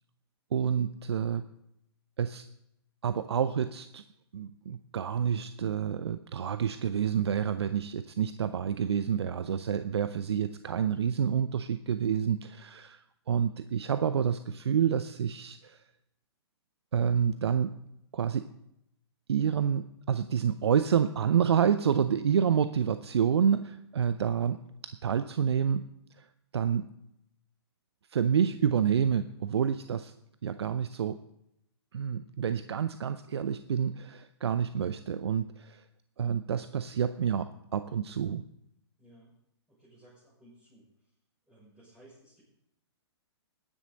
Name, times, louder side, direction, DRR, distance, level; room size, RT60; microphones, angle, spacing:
voice 1, 0.5-1.4 2.2-2.4 3.0-4.0 4.3-15.8 16.9-17.8 18.1-18.5 19.3-24.6 24.8-25.8 26.2-26.3 26.5-26.9 28.1-30.1 30.4-31.2 31.9-35.8 36.2-38.4, right 8 dB, 70° right, 11 dB, 0.6 m, -28 dB
voice 2, 39.0-39.3 39.7-41.1 41.5-42.4, right 1 dB, 5° right, -8 dB, 6.0 m, -58 dB
19.5 x 10.0 x 4.0 m, 0.81 s
figure-of-eight pair, 120°, 14 cm